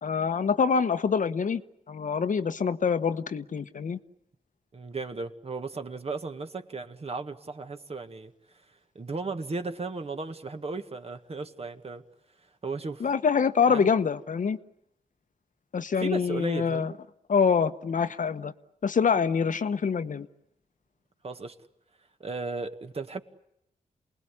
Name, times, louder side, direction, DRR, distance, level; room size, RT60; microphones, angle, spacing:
voice 1, 0.0-1.6 1.9-4.0 13.0-14.6 15.7-16.9 17.3-18.5 18.8-20.3, left 6 dB, 60° left, 11 dB, 1.1 m, -25 dB
voice 2, 4.7-8.3 9.0-12.0 12.6-13.1 13.7-13.9 16.0-17.0 21.2-21.6 22.2-23.2, right 3 dB, 45° right, 7 dB, 1.9 m, -35 dB
28.5 x 20.0 x 9.9 m, 0.84 s
cardioid pair, 80°, 15 cm